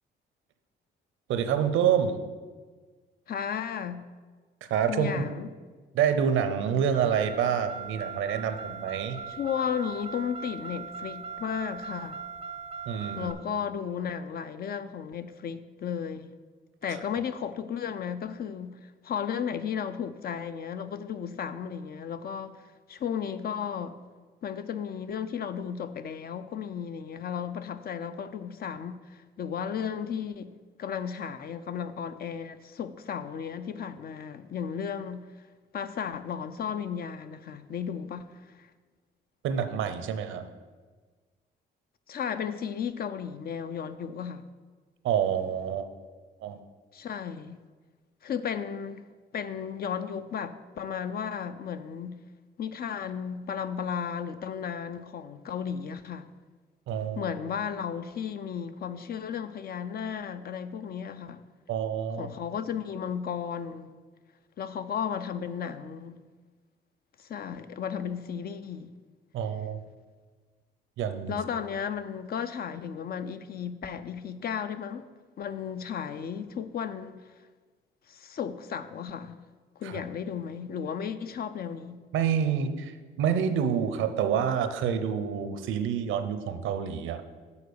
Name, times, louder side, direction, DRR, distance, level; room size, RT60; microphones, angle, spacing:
voice 1, 1.3-2.2 4.6-5.2 5.9-9.2 12.9-13.3 16.9-17.0 39.4-40.4 45.0-45.9 46.4-46.6 56.9-57.3 61.7-62.3 69.3-69.8 71.0-71.4 79.8-80.0 82.1-87.2, right 8 dB, 85° right, 0.7 m, -27 dB
voice 2, 3.3-4.0 4.9-5.5 9.3-12.2 13.2-16.3 16.8-22.6 22.9-24.0 24.4-30.5 30.8-35.3 35.7-38.7 42.1-44.4 46.9-47.6 48.2-49.0 49.3-52.2 52.6-56.3 57.2-61.4 62.2-63.9 64.6-66.2 67.2-68.9 71.3-75.1 75.4-77.2 78.1-79.4 79.8-82.0, left 7 dB, 50° left, 0.5 m, -34 dB
Car, 6.9-13.3, right 6 dB, 30° right, 0.5 m, -40 dB
7.1 x 4.1 x 6.7 m
cardioid pair, 90°, 20 cm